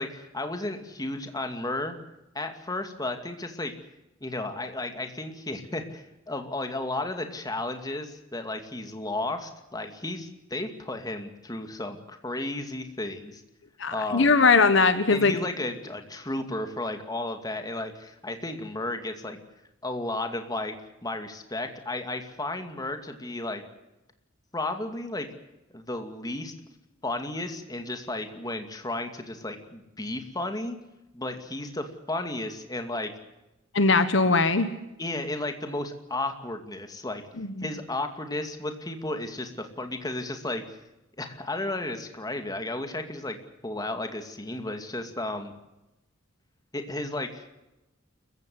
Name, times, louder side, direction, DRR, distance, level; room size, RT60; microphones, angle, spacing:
voice 1, 0.0-1.9 2.3-3.7 4.2-13.4 13.9-14.3 15.1-19.4 19.8-20.8 21.0-23.6 24.5-25.3 25.7-26.5 27.0-30.8 31.1-33.1 35.0-37.2 37.6-40.6 41.2-43.4 43.6-45.5 46.7-47.5, left 2 dB, 20° left, 6 dB, 2.4 m, -33 dB
voice 2, 13.8-15.3 33.7-34.7 37.4-37.7, left 4 dB, 65° left, 11 dB, 1.4 m, -20 dB
29.0 x 15.5 x 8.0 m, 0.96 s
head